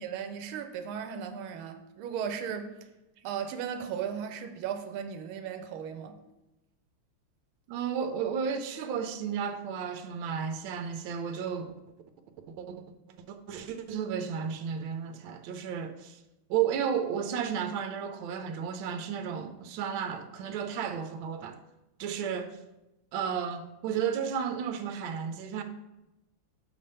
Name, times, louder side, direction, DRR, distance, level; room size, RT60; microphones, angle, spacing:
voice 1, 0.0-2.7 3.2-6.1, right 8 dB, 90° right, 1.5 m, -36 dB
voice 2, 7.7-11.7 12.6-12.8 13.3-16.2 16.5-21.6 22.0-22.6 23.1-25.6, right 7 dB, 75° right, 1.3 m, -33 dB
7.3 x 3.4 x 5.4 m
omnidirectional pair, 2.3 m